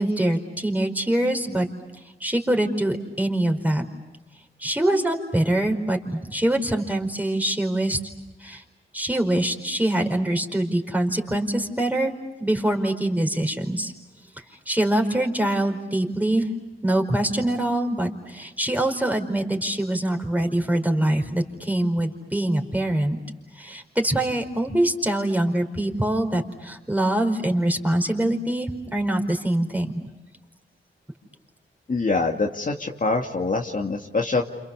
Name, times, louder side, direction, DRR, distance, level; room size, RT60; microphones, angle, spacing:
voice 1, 0.0-1.7 2.2-3.8 4.6-8.0 8.4-8.6 8.9-12.1 12.4-13.9 14.7-16.5 16.8-23.2 23.5-29.9, right 1 dB, 10° right, 4 dB, 4.7 m, -24 dB
voice 2, 31.9-34.4, left 3 dB, 40° left, 1 dB, 2.4 m, -24 dB
29.5 x 28.0 x 7.0 m, 1.0 s
cardioid pair, 60°, 21 cm